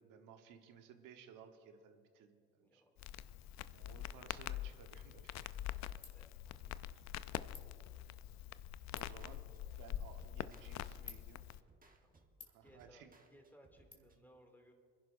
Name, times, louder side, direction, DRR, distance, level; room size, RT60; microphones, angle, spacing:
voice 1, 0.0-2.8 3.7-5.5 6.6-7.0 8.9-9.4 9.8-11.4 12.5-13.1 13.9-14.1, right 7 dB, 75° right, 6 dB, 1.3 m, -59 dB
voice 2, 2.6-3.0 5.7-6.6 12.0-12.2 12.6-14.7, equal, 5° left, 2 dB, 2.5 m, -64 dB
Crackle, 3.0-11.6, left 12 dB, 55° left, 0.5 m, -45 dB
Ratchet pawl, 4.9-13.9, left 3 dB, 25° left, 2.2 m, -62 dB
sound 1, 8.6-14.2, right 3 dB, 25° right, 1.3 m, -68 dB
27.0 x 11.0 x 2.6 m, 2.2 s
supercardioid pair, 70°, 32 cm